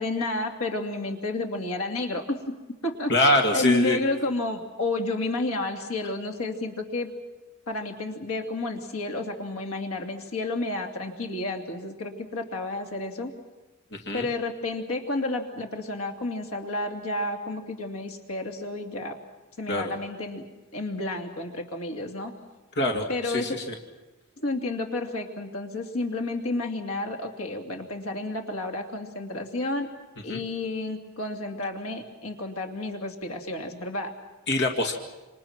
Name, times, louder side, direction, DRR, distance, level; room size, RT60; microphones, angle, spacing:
voice 1, 0.0-2.5 2.8-7.1 7.7-13.3 14.1-19.1 19.6-20.4 20.7-22.3 23.1-23.6 24.4-29.9 30.2-34.1, left 2 dB, 85° left, 3 dB, 2.7 m, -31 dB
voice 2, 3.1-4.0 14.0-14.3 19.7-19.9 22.7-23.8 30.3-30.4 34.5-34.9, left 1 dB, 55° left, 2 dB, 2.2 m, -24 dB
27.0 x 26.5 x 6.0 m, 1.1 s
head